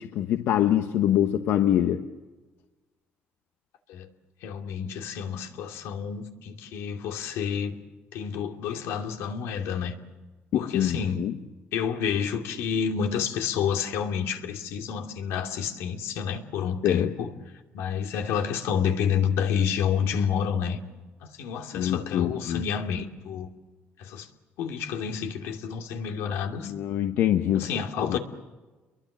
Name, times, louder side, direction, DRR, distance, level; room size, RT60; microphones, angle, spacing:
voice 1, 0.0-2.0 10.5-11.3 16.8-17.1 21.7-22.6 26.6-27.7 28.0-28.2, left 11 dB, 70° left, 1.2 m, -24 dB
voice 2, 4.4-7.8 8.1-9.9 10.5-11.2 11.7-17.3 17.7-20.8 21.2-23.5 24.0-24.3 24.6-26.7 27.5-28.2, left 7 dB, 90° left, 2.7 m, -29 dB
30.0 x 23.0 x 7.4 m
cardioid pair, 135°, 4 cm